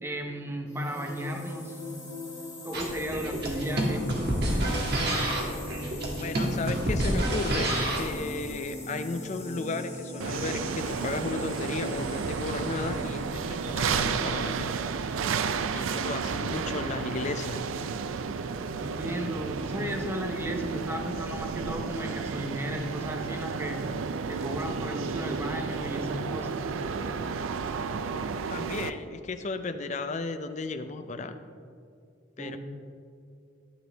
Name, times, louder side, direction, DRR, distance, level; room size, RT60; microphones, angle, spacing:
voice 1, 0.0-1.8 2.6-4.1 18.8-23.8 24.3-26.7 32.4-32.6, equal, 10° right, 3 dB, 0.7 m, -34 dB
sound 1, 0.7-14.1, left 1 dB, 15° left, 1.8 m, -40 dB
sound 2, 2.7-8.1, right 1 dB, 55° right, 1.5 m, -28 dB
voice 2, 6.2-7.7 7.9-14.7 15.7-17.6 28.5-31.4 32.4-32.6, left 3 dB, 35° left, 9 dB, 0.4 m, -34 dB
sound 3, 10.2-28.9, right 5 dB, 85° right, 0.4 m, -32 dB
11.5 x 8.1 x 3.4 m, 2.4 s
head